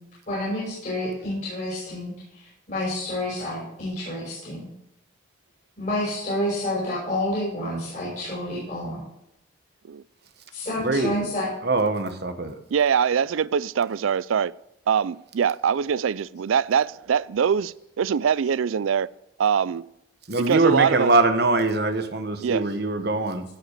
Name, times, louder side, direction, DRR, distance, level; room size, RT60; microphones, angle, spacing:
voice 1, 0.3-4.7 5.8-9.1 10.5-11.5, left 1 dB, 40° left, 5.7 m, -29 dB
voice 2, 10.8-11.1 11.6-12.5 20.3-23.4, right 2 dB, 55° right, 1.3 m, -22 dB
voice 3, 12.7-14.5 14.9-19.1 19.4-19.8 20.4-21.1 22.4-22.6, right 7 dB, 85° right, 0.4 m, -23 dB
16.5 x 5.8 x 6.6 m
head